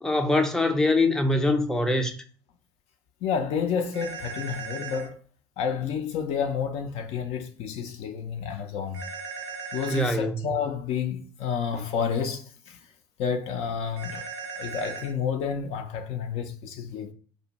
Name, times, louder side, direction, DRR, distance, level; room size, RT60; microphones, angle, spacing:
voice 1, 0.0-2.2 9.9-10.4, left 2 dB, 5° left, 0.5 m, -23 dB
voice 2, 3.2-5.2 5.6-9.0 9.7-12.8 13.2-14.2 14.6-17.1, left 7 dB, 55° left, 0.4 m, -30 dB
sound 1, 3.9-5.1 8.9-10.1 14.0-15.1, right 5 dB, 80° right, 0.6 m, -37 dB
2.5 x 2.2 x 2.8 m
hypercardioid pair, 65°, 12 cm